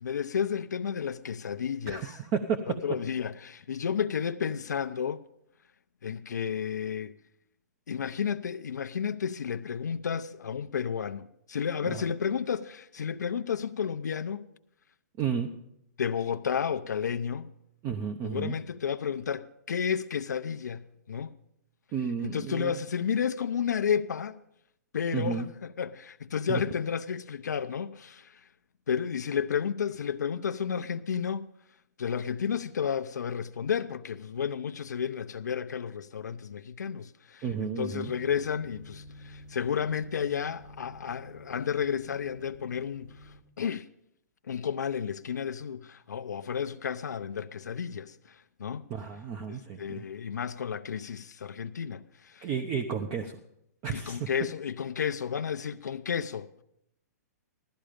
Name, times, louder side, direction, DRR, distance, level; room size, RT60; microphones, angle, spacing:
voice 1, 0.0-2.1 2.7-5.2 6.0-7.1 7.9-14.5 16.0-17.5 18.2-21.3 22.2-24.4 24.9-28.4 28.9-31.5 32.0-43.9 44.5-48.8 49.5-52.5 53.9-56.5, left 7 dB, 85° left, 0.6 m, -32 dB
voice 2, 1.9-2.7 11.8-12.0 15.2-15.5 17.8-18.6 21.9-22.7 25.1-25.5 26.5-26.6 37.4-38.1 48.9-50.1 52.4-53.4 53.8-54.3, right 6 dB, 30° right, 0.8 m, -32 dB
sound 1, 38.0-43.4, left 1 dB, 60° right, 3.6 m, -49 dB
16.0 x 12.5 x 5.1 m
hypercardioid pair, 135°, 9 cm